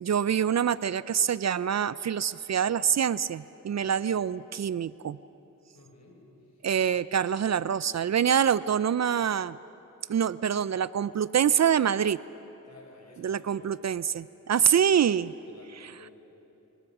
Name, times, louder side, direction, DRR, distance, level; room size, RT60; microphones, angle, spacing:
voice 1, 0.0-5.2 6.6-9.6 10.1-12.2 13.2-15.3 15.8-15.9, right 8 dB, 55° right, 18 dB, 0.5 m, -25 dB
voice 2, 5.7-6.2 6.5-6.7 12.7-13.7 15.4-16.1, left 2 dB, 55° left, 0 dB, 5.6 m, -53 dB
25.0 x 21.0 x 6.1 m, 2.9 s
cardioid pair, 50°, 32 cm